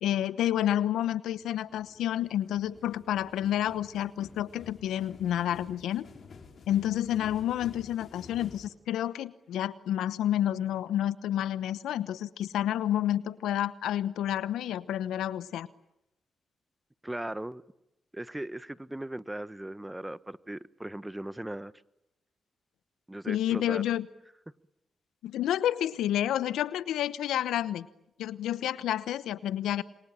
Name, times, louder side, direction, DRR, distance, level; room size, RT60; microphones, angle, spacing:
voice 1, 0.0-6.1 6.7-15.7 23.3-24.1 25.2-27.9 28.2-29.8, left 11 dB, 85° left, 1.0 m, -29 dB
sound 1, 1.3-8.7, left 5 dB, 60° left, 4.6 m, -51 dB
voice 2, 17.0-17.6 18.1-21.7 23.1-23.8, right 1 dB, 15° right, 1.2 m, -38 dB
28.0 x 23.5 x 8.9 m
supercardioid pair, 50°, 0 cm